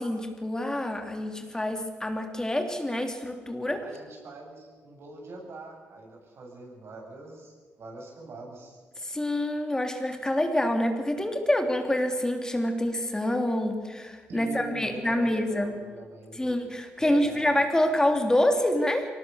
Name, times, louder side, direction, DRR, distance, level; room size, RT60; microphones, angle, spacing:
voice 1, 0.0-3.8 9.0-15.7 16.3-19.1, left 1 dB, 15° left, 5 dB, 3.3 m, -27 dB
voice 2, 3.8-8.8 14.3-16.5 17.0-17.5, right 2 dB, 60° right, 0 dB, 8.0 m, -43 dB
24.0 x 18.5 x 7.2 m, 1.4 s
cardioid pair, 80°, 5 cm